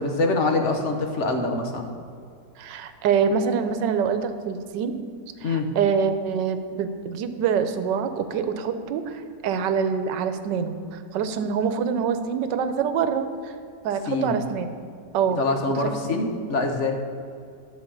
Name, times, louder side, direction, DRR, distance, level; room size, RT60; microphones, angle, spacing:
voice 1, 0.0-1.9 5.4-5.7 14.1-14.4 15.4-17.0, left 2 dB, 50° left, 3 dB, 1.0 m, -24 dB
voice 2, 2.6-5.0 5.4-13.5 13.8-14.7 15.1-15.4, right 6 dB, 90° right, 10 dB, 1.3 m, -25 dB
11.0 x 4.6 x 6.9 m, 2.4 s
omnidirectional pair, 1.9 m